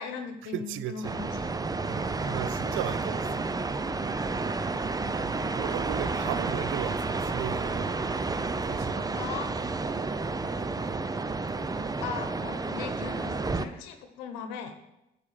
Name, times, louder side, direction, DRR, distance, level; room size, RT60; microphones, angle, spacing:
voice 1, 0.0-1.5 2.2-2.4 9.0-9.5 12.0-14.7, left 6 dB, 90° left, 1.1 m, -38 dB
voice 2, 0.5-1.4 1.9-3.6 5.1-7.9 8.7-9.1, right 12 dB, 70° right, 0.6 m, -36 dB
sound 1, 1.0-13.7, right 3 dB, 20° right, 0.6 m, -31 dB
9.4 x 5.0 x 7.3 m
supercardioid pair, 65°, 21 cm